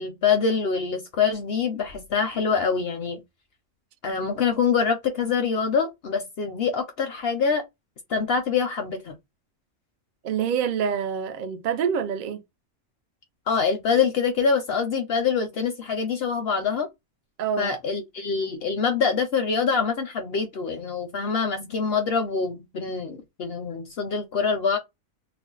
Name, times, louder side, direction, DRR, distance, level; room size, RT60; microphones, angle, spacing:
voice 1, 0.0-3.2 4.0-7.6 8.1-9.2 13.5-16.9 17.6-24.8, left 5 dB, 65° left, 0.6 m, -25 dB
voice 2, 10.2-12.4 17.4-17.7, right 7 dB, 85° right, 0.4 m, -26 dB
2.5 x 2.0 x 3.7 m
omnidirectional pair, 1.5 m